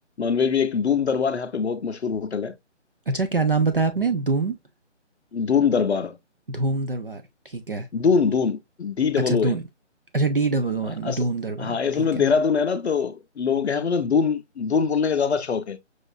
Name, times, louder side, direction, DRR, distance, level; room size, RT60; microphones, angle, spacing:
voice 1, 0.2-2.5 5.3-6.2 7.9-9.5 11.0-11.2 11.6-15.8, left 6 dB, 65° left, 0.6 m, -23 dB
voice 2, 3.1-4.6 6.5-7.9 9.3-9.6 10.1-12.3, right 3 dB, 50° right, 0.5 m, -25 dB
6.3 x 2.4 x 2.2 m
hypercardioid pair, 175°, 36 cm